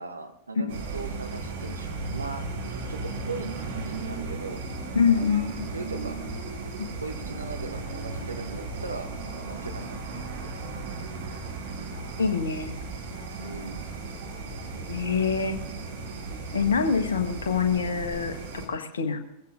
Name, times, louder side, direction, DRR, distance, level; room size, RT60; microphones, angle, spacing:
voice 1, 0.0-4.6 5.1-5.4 5.7-6.2 7.0-10.5 13.4-13.9, right 3 dB, 80° right, 6 dB, 1.0 m, -39 dB
sound 1, 0.7-18.7, right 3 dB, 55° right, 3.1 m, -36 dB
sound 2, 2.1-13.3, left 1 dB, 20° left, 4.2 m, -47 dB
voice 2, 4.9-5.7 6.8-6.9 12.2-12.7 14.9-15.6 16.5-19.2, left 6 dB, 70° left, 6 dB, 1.3 m, -25 dB
21.5 x 15.5 x 2.6 m, 0.84 s
figure-of-eight pair, 90°, 0 cm